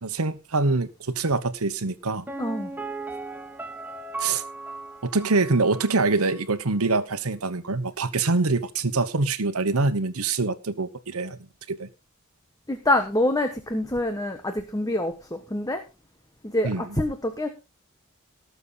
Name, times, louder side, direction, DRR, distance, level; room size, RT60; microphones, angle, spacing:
voice 1, 0.0-2.2 4.2-4.4 5.0-11.4 11.7-11.9 16.6-16.8, right 3 dB, 80° right, 1.1 m, -24 dB
Piano, 2.3-6.0 6.3-6.4, right 3 dB, 10° right, 1.2 m, -37 dB
voice 2, 2.4-2.7 12.7-15.8 16.4-17.5, left 1 dB, 15° left, 1.2 m, -26 dB
18.5 x 7.0 x 4.1 m
head